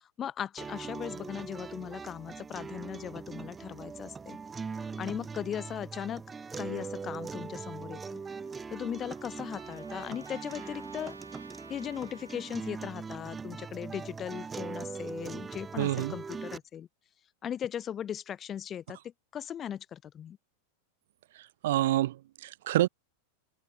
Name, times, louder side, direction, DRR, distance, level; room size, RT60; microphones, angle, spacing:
voice 1, 0.0-4.4 5.0-6.2 6.6-8.2 8.7-11.2 11.7-16.9 17.4-20.4, left 9 dB, 25° left, 0.4 m, -38 dB
sound 1, 0.6-16.6, right 5 dB, 15° right, 0.7 m, -41 dB
Trumpet, 8.2-13.0, right 4 dB, 75° right, 1.4 m, -54 dB
voice 2, 15.8-16.2 21.6-22.9, right 14 dB, 55° right, 0.3 m, -27 dB
figure-of-eight pair, 90°, 0 cm